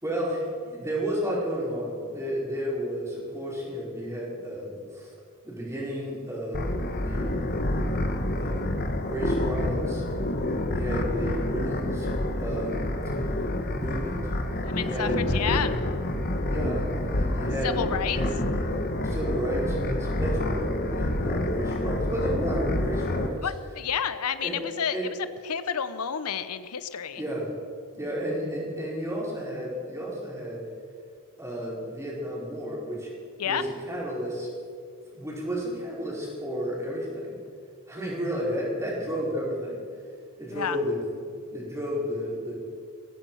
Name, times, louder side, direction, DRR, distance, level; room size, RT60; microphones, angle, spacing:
voice 1, 0.0-5.1 5.4-7.5 8.4-10.0 10.7-12.1 12.4-12.9 13.7-14.3 14.7-15.2 16.4-18.7 19.0-23.4 24.4-24.6 24.9-25.1 27.2-27.5 27.9-30.6 31.4-33.1 33.4-34.5 35.1-37.4 37.9-39.8 40.4-42.6, equal, 15° right, -5 dB, 4.8 m, -32 dB
sound 1, 6.5-23.3, left 1 dB, 45° left, 1.2 m, -28 dB
voice 2, 14.7-15.7 17.6-18.2 23.4-25.0 25.4-27.2 33.4-33.6 40.5-40.8, left 8 dB, 85° left, 13 dB, 0.7 m, -30 dB
15.5 x 14.5 x 5.6 m, 2.3 s
head